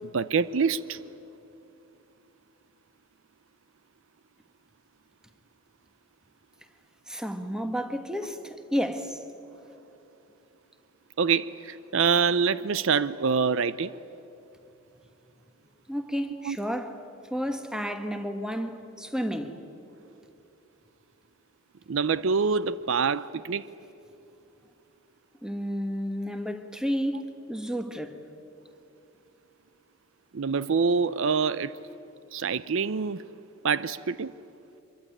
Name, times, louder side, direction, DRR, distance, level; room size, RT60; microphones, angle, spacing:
voice 1, 0.1-1.0 11.2-13.9 16.4-16.6 21.9-23.6 30.3-31.7 32.3-33.2 33.6-34.3, right 5 dB, 65° right, 0.5 m, -25 dB
voice 2, 7.1-9.2 15.9-17.0 17.3-19.6 25.4-28.2, equal, 5° right, 1.4 m, -31 dB
25.0 x 23.0 x 9.8 m
head